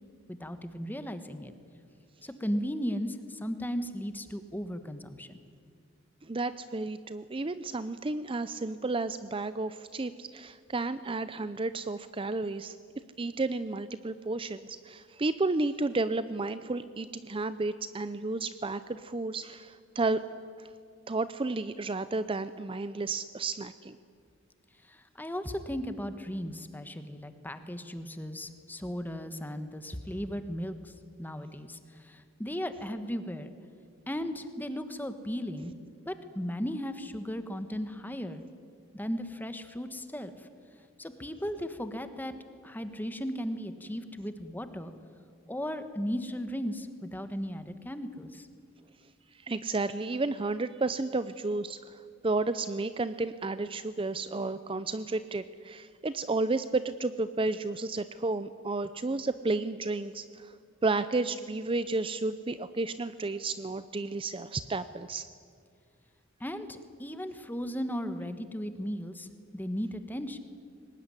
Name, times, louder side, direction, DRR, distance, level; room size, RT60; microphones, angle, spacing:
voice 1, 0.3-1.5 2.2-5.4 24.8-30.9 31.2-33.5 34.1-35.7 36.0-38.4 38.9-40.5 41.0-42.3 42.6-44.9 45.5-48.5 66.4-70.4, equal, 10° left, 9 dB, 1.3 m, -36 dB
voice 2, 6.2-12.8 13.2-20.2 20.6-20.7 21.1-24.0 49.3-60.5 60.8-65.3, right 3 dB, 25° right, 13 dB, 0.5 m, -32 dB
22.5 x 19.5 x 9.8 m, 2.2 s
head